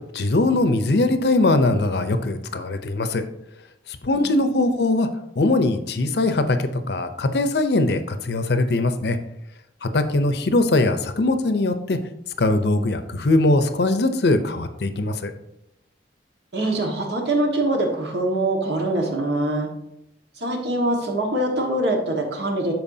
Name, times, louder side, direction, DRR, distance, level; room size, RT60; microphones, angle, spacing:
voice 1, 0.1-3.2 4.0-5.1 5.4-9.2 9.8-12.0 12.4-15.3, left 2 dB, 60° left, 9 dB, 0.6 m, -21 dB
voice 2, 4.1-4.9 16.5-19.7 20.4-22.7, right 1 dB, 65° right, 1 dB, 1.5 m, -24 dB
12.5 x 4.6 x 2.7 m, 0.83 s
head